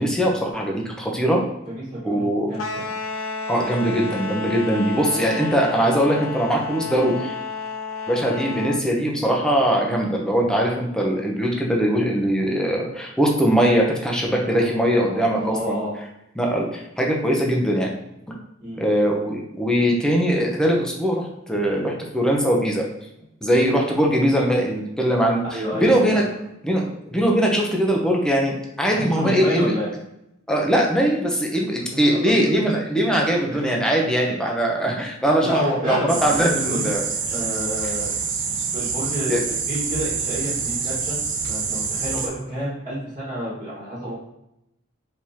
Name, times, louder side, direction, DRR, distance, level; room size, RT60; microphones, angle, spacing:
voice 1, 0.0-1.4 2.0-2.5 3.5-7.3 8.1-15.8 16.4-17.9 18.8-22.9 23.4-26.2 26.6-29.7 30.5-37.0 39.3-39.4, equal, 5° left, -1 dB, 0.7 m, -21 dB
voice 2, 1.7-2.9 5.1-5.4 14.5-15.9 18.6-18.8 25.5-26.2 28.9-29.9 32.1-32.6 33.5-33.7 35.2-37.0 37.3-38.2 38.7-41.2 41.5-44.1, equal, 30° right, -8 dB, 1.5 m, -29 dB
sound 1, 2.5-8.8, left 4 dB, 85° left, 0.6 m, -31 dB
sound 2, 36.1-42.3, right 5 dB, 60° right, 0.6 m, -26 dB
4.6 x 3.5 x 2.9 m, 0.84 s
head